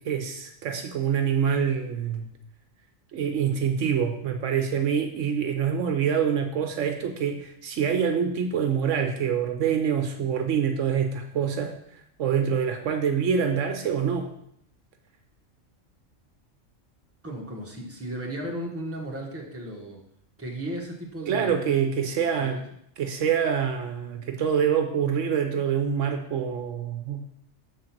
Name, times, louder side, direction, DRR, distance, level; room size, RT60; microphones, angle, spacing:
voice 1, 0.0-2.3 3.1-14.3 21.3-22.6 23.0-27.3, right 7 dB, 75° right, 6 dB, 1.0 m, -26 dB
voice 2, 17.2-20.0 20.4-21.5 22.4-22.6, right 1 dB, 10° right, -2 dB, 1.3 m, -35 dB
7.0 x 3.9 x 5.9 m, 0.72 s
omnidirectional pair, 1.3 m